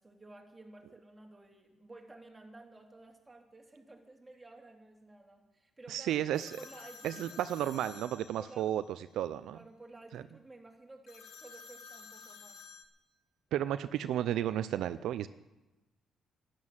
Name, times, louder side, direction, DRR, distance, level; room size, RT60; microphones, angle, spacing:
voice 1, 0.0-6.2 6.6-7.4 8.4-8.7 9.5-12.7, right 2 dB, 15° right, 1 dB, 2.8 m, -53 dB
voice 2, 5.9-6.5 7.0-8.8 9.1-9.6 10.1-10.2 13.5-15.3, right 11 dB, 80° right, 12 dB, 0.5 m, -33 dB
sound 1, 6.3-8.9 11.1-12.9, left 5 dB, 75° left, 1.6 m, -52 dB
12.5 x 11.5 x 7.5 m, 1.0 s
cardioid pair, 90°, 0 cm